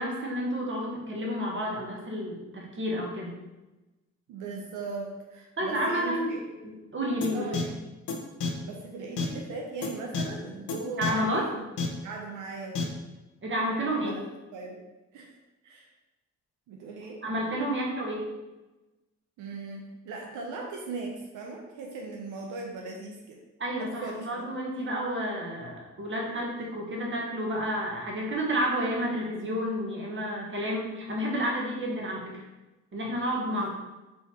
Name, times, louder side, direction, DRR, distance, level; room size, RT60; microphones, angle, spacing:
voice 1, 0.0-3.4 5.6-6.4 6.6-7.6 11.0-11.5 13.4-14.2 17.2-18.2 23.6-32.4 32.9-33.7, equal, 40° right, -2 dB, 1.4 m, -30 dB
voice 2, 4.3-6.4 7.3-7.8 8.6-11.6 12.0-13.0 14.0-14.8 15.1-15.3 15.6-15.9 16.7-17.2 19.4-23.4 23.8-24.3 33.5-33.7, right 3 dB, 90° right, 0 dB, 0.6 m, -39 dB
sound 1, 7.2-7.3 7.5-7.6 8.1-8.2 8.4-8.5 9.2-9.3 9.8-9.9 10.1-10.2 10.7-10.8 11.0-11.1 11.8-11.9 12.7-12.8, left 5 dB, 75° left, 0.8 m, -28 dB
4.2 x 2.7 x 4.3 m, 1.1 s
supercardioid pair, 55°, 30 cm